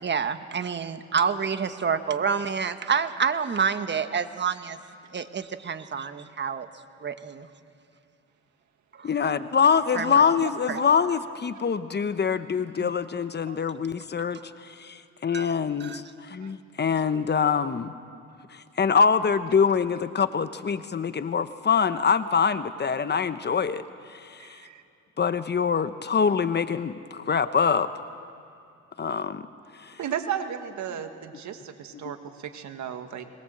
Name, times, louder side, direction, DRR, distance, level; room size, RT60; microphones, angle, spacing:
voice 1, 0.0-4.8 5.1-6.7 7.0-7.5 8.9-9.1 9.9-10.2 10.7-10.8 12.8-12.9 13.5-13.6 15.3-15.5 15.8-16.0, right 6 dB, 35° right, 10 dB, 1.3 m, -28 dB
voice 2, 9.0-17.9 18.5-24.6 25.2-27.9 29.0-29.4 29.7-30.0, left 6 dB, 35° left, 12 dB, 0.9 m, -25 dB
voice 3, 24.4-24.8 30.0-33.2, right 9 dB, 70° right, 7 dB, 1.8 m, -34 dB
22.0 x 21.0 x 7.8 m, 2.6 s
cardioid pair, 90°, 30 cm